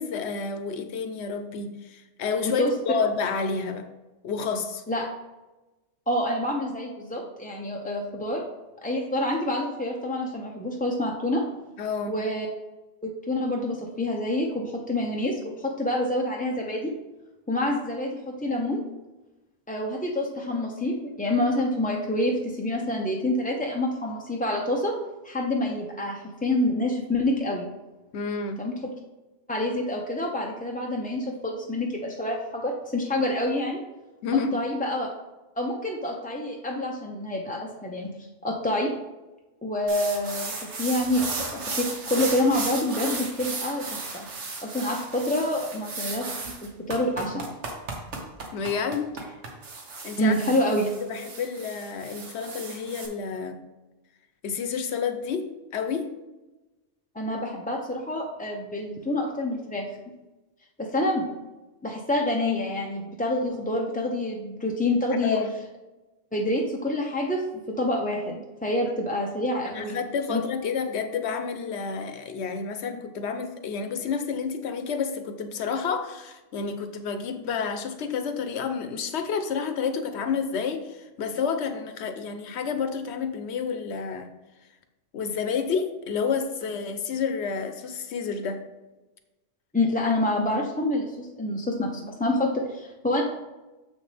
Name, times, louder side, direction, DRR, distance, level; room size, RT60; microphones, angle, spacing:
voice 1, 0.0-3.8 4.2-4.8 11.8-12.2 28.1-28.6 34.2-34.6 48.5-49.1 50.0-50.4 51.0-53.6 54.4-56.1 65.2-65.5 69.6-84.3 85.1-88.6, left 5 dB, 65° left, 8 dB, 1.0 m, -29 dB
voice 2, 6.1-8.4 8.8-11.4 12.1-12.5 13.0-16.9 17.5-18.8 19.7-24.9 25.2-27.6 28.6-28.7 29.5-33.8 34.5-35.1 35.6-38.1 38.4-38.9 39.6-43.9 44.1-44.3 44.6-46.3 46.6-47.4 50.2-50.9 57.1-59.9 60.8-61.3 61.8-65.4 66.3-67.4 67.8-70.0 70.3-70.4 89.7-93.2, left 1 dB, 10° left, -1 dB, 0.4 m, -27 dB
sound 1, 39.9-53.1, right 3 dB, 65° right, 1.5 m, -35 dB
7.0 x 6.5 x 3.3 m, 1.1 s
omnidirectional pair, 1.3 m